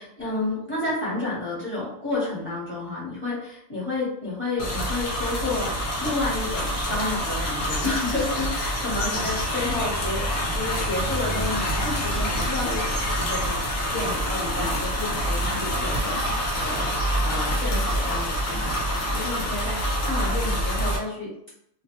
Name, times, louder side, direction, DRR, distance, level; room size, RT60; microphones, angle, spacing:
voice 1, 0.0-21.3, left 2 dB, 10° left, -7 dB, 0.7 m, -31 dB
sound 1, 4.6-21.0, equal, 55° left, 0.8 m, -26 dB
2.4 x 2.1 x 2.9 m, 0.75 s
omnidirectional pair, 1.5 m